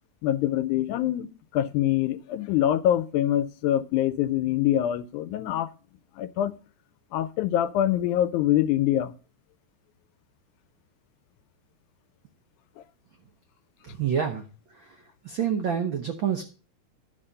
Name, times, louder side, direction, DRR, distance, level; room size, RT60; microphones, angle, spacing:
voice 1, 0.2-1.3 1.5-5.7 6.2-6.5 7.1-9.1, left 12 dB, 85° left, 2.1 m, -24 dB
voice 2, 13.8-14.4 14.7-15.0 15.2-16.4, right 8 dB, 80° right, 1.1 m, -27 dB
11.5 x 4.1 x 6.7 m
omnidirectional pair, 3.4 m